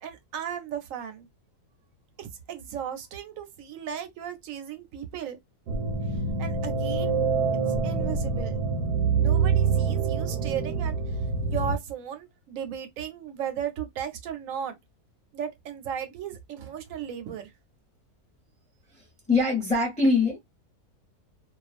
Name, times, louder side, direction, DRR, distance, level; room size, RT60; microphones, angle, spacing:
voice 1, 0.0-1.3 2.2-5.4 6.4-7.2 7.8-8.6 9.2-11.0 11.4-14.8 15.3-17.5, right 9 dB, 70° right, 0.9 m, -35 dB
sound 1, 5.7-11.8, right 5 dB, 85° right, 1.2 m, -26 dB
voice 2, 19.3-20.4, left 3 dB, 5° left, 0.7 m, -22 dB
2.4 x 2.2 x 2.4 m
omnidirectional pair, 1.7 m